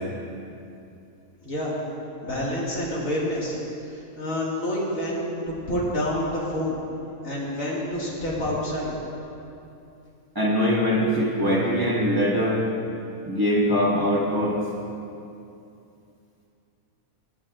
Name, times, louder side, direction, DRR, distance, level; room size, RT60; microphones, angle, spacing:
voice 1, 1.4-1.7 2.2-3.6 3.9-6.8 7.2-8.9, left 1 dB, 60° left, -5 dB, 2.3 m, -28 dB
voice 2, 10.3-12.6 13.2-14.6, equal, 15° right, -6 dB, 1.4 m, -22 dB
15.0 x 9.1 x 2.4 m, 2.7 s
omnidirectional pair, 1.6 m